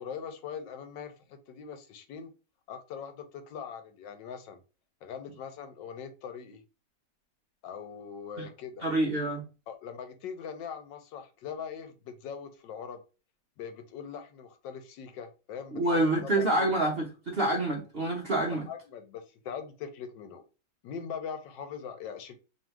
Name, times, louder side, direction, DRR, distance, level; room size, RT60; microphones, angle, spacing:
voice 1, 0.0-2.3 2.7-4.6 5.0-6.6 7.6-8.9 9.7-13.0 13.6-16.6 18.7-20.4 20.8-22.4, left 7 dB, 85° left, 1.4 m, -41 dB
voice 2, 8.8-9.4 15.7-18.7, right 1 dB, 50° right, 0.7 m, -27 dB
3.0 x 2.7 x 4.4 m
omnidirectional pair, 1.9 m